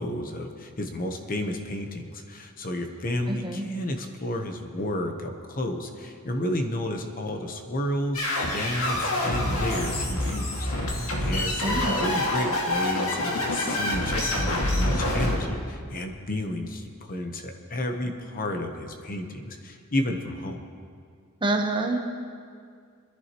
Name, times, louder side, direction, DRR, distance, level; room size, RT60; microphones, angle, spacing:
voice 1, 0.0-8.2 8.5-10.7 11.2-20.6, left 1 dB, 40° left, 5 dB, 0.9 m, -31 dB
voice 2, 3.3-3.7 11.6-12.0 21.4-22.0, right 2 dB, 25° right, 3 dB, 1.0 m, -27 dB
sound 1, 8.1-15.4, left 1 dB, 75° left, 2.1 m, -26 dB
23.0 x 11.0 x 3.0 m, 2.2 s
head